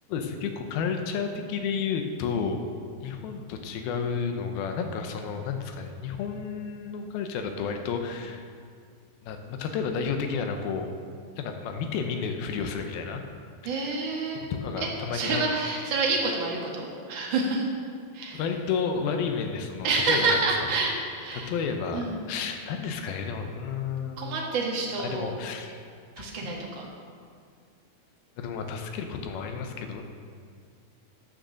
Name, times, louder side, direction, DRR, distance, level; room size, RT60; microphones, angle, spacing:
voice 1, 0.1-2.7 3.0-8.4 9.2-10.9 11.4-13.2 13.6-14.0 14.6-15.4 18.3-20.4 21.3-24.4 25.0-25.8 26.4-26.5 28.4-30.0, left 6 dB, 75° left, 5 dB, 2.5 m, -31 dB
voice 2, 13.6-14.4 14.8-17.7 18.1-18.4 19.8-21.5 21.9-22.3 24.2-25.3 26.2-26.9, right 3 dB, 60° right, -2 dB, 1.2 m, -28 dB
12.5 x 6.5 x 6.4 m, 2.2 s
omnidirectional pair, 4.7 m